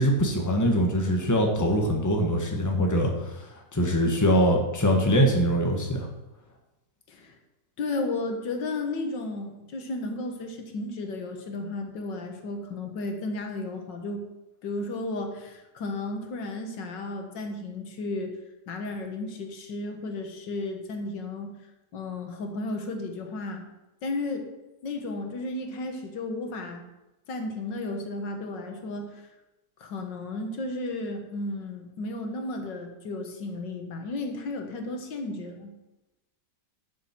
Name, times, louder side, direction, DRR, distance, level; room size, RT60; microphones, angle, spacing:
voice 1, 0.0-3.3 3.7-6.0, equal, 10° left, 1 dB, 1.4 m, -23 dB
voice 2, 7.8-14.2 14.6-18.3 18.7-21.5 21.9-23.7 24.0-24.5 24.8-26.8 27.3-29.3 29.8-35.7, left 2 dB, 85° left, 4 dB, 2.0 m, -33 dB
12.0 x 7.1 x 4.5 m, 1.0 s
omnidirectional pair, 1.9 m